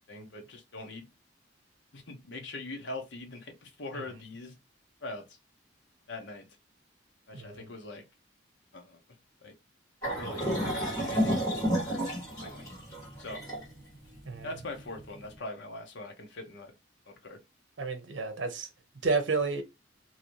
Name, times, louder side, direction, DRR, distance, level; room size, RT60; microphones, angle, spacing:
voice 1, 0.1-1.1 1.9-4.6 5.0-5.4 6.1-6.5 7.3-8.1 8.7-9.0 9.4-9.5 10.1-12.6 13.2-13.4 14.4-16.7 17.1-17.4, left 2 dB, 70° left, 0.9 m, -42 dB
sound 1, 10.0-15.2, equal, 15° left, 1.8 m, -31 dB
voice 2, 17.8-18.7 19.0-19.6, right 4 dB, 75° right, 0.8 m, -30 dB
2.9 x 2.7 x 2.9 m
head